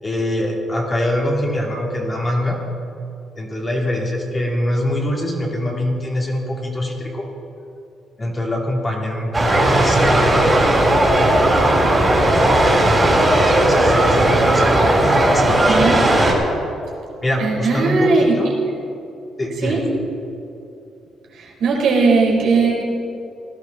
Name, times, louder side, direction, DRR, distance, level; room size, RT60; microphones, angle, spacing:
voice 1, 0.0-2.6 3.4-7.3 8.2-10.6 12.7-15.8 17.2-18.5 19.4-19.8, left 1 dB, 25° left, -1 dB, 2.8 m, -24 dB
sound 1, 9.3-16.3, right 1 dB, 20° right, 3.5 m, -15 dB
voice 2, 15.7-16.0 17.4-18.3 19.6-19.8 21.3-22.8, right 4 dB, 75° right, -3 dB, 4.0 m, -18 dB
18.0 x 12.0 x 4.0 m, 2.7 s
cardioid pair, 90°, 0 cm